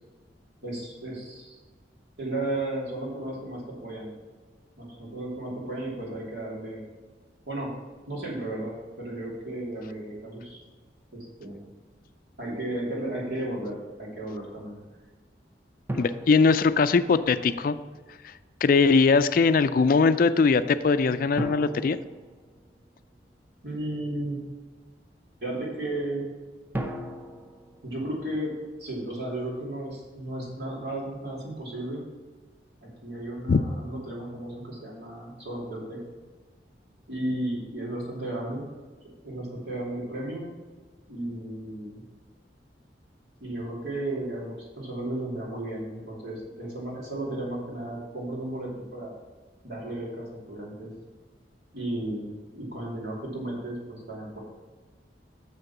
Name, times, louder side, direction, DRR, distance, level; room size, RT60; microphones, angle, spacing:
voice 1, 0.6-1.6 2.2-4.1 4.8-6.8 7.5-7.7 8.1-10.6 11.1-11.7 12.4-14.8 23.6-24.4 25.4-26.3 27.8-32.0 32.8-36.0 37.1-38.6 39.2-40.5 41.1-42.0 43.4-49.1 49.6-50.9 51.7-54.4, right 1 dB, 65° right, -4 dB, 3.0 m, -34 dB
sound 1, 15.9-17.5 21.4-23.3 26.7-29.0, right 1 dB, 10° right, 0.6 m, -38 dB
voice 2, 16.0-17.8 18.2-18.3 18.6-22.0 33.5-33.6, left 4 dB, 50° left, 12 dB, 0.4 m, -21 dB
7.0 x 6.5 x 5.9 m, 1.3 s
head